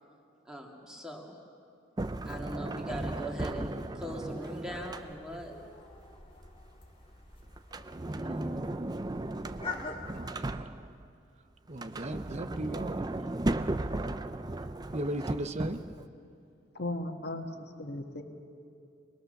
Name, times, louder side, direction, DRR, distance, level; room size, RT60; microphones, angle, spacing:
voice 1, 0.5-1.4 2.3-5.5 8.1-8.5, equal, 5° right, 0 dB, 2.3 m, -41 dB
Sliding door, 2.0-5.5 7.6-11.1 11.7-16.0, right 2 dB, 20° right, 0.5 m, -36 dB
sound 1, 4.7-10.1, left 4 dB, 30° left, 1.9 m, -45 dB
voice 2, 10.1-10.7 11.7-13.1 14.9-15.8, right 1 dB, 35° right, 10 dB, 0.9 m, -36 dB
voice 3, 16.7-18.2, left 2 dB, 55° left, 5 dB, 1.5 m, -36 dB
24.5 x 20.5 x 6.7 m, 2.5 s
head